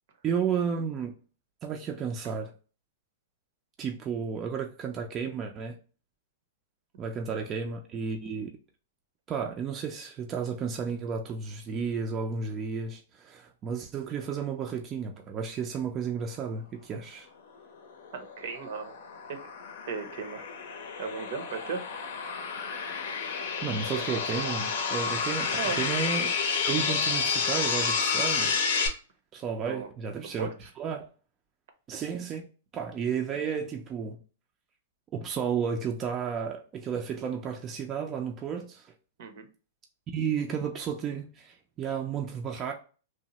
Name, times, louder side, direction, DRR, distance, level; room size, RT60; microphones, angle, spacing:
voice 1, 0.2-1.1 1.6-2.5 3.8-5.8 7.0-8.5 9.3-17.3 23.6-26.3 26.6-28.5 29.3-30.5 30.8-31.1 31.9-32.5 32.7-34.2 35.1-38.9 40.1-42.7, right 6 dB, 25° right, 0.4 m, -32 dB
sound 1, 18.0-28.9, left 5 dB, 70° left, 0.6 m, -30 dB
voice 2, 18.1-18.9 19.3-19.4 19.9-20.5 21.0-21.8 25.5-25.8 29.7-29.9 30.4-30.5 39.2-39.5, right 5 dB, 65° right, 0.7 m, -36 dB
2.9 x 2.0 x 2.8 m
hypercardioid pair, 130°, 0 cm